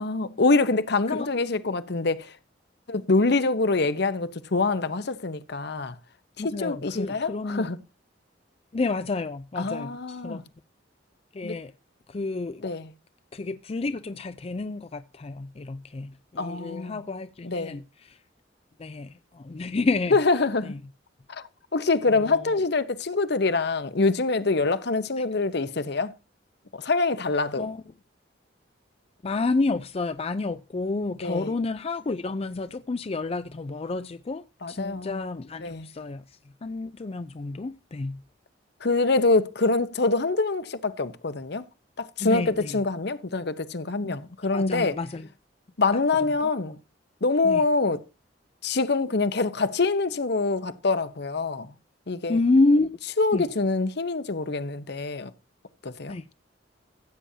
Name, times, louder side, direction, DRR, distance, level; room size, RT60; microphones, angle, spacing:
voice 1, 0.0-2.3 2.9-5.9 6.4-7.8 9.6-10.4 11.4-11.6 12.6-12.9 16.4-17.0 17.4-17.8 20.1-20.8 21.3-21.4 21.7-26.1 26.7-27.7 31.2-31.5 34.6-35.2 35.6-35.9 38.8-41.6 42.0-45.0 45.8-46.8 47.2-48.0 48.6-51.7 52.1-52.4 53.2-55.3 55.8-56.2, left 3 dB, 60° left, 0.9 m, -25 dB
voice 2, 6.4-7.7 8.7-10.4 11.3-11.7 12.1-12.7 13.3-17.8 18.8-20.1 22.1-22.5 25.2-25.3 27.6-27.8 29.2-36.2 36.6-38.2 42.2-42.8 44.0-44.1 44.5-45.3 47.4-47.6 52.3-53.0 53.3-53.5 56.1-56.2, left 3 dB, 35° left, 0.4 m, -29 dB
15.5 x 8.8 x 2.8 m
head